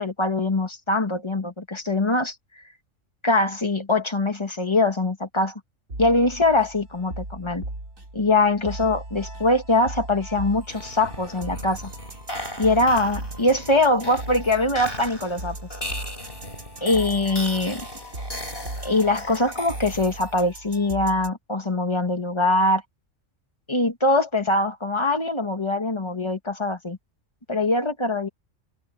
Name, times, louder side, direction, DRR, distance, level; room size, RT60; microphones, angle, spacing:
voice 1, 0.0-2.3 3.2-5.6 6.0-7.6 8.1-11.9 12.6-15.5 16.8-17.9 18.8-22.8 23.7-27.0 27.5-28.3, left 2 dB, 20° left, 1.5 m, -22 dB
sound 1, 5.9-21.3, right 1 dB, 85° right, 5.5 m, -38 dB
sound 2, 10.6-20.5, left 1 dB, 45° left, 6.1 m, -37 dB
omnidirectional pair, 1.3 m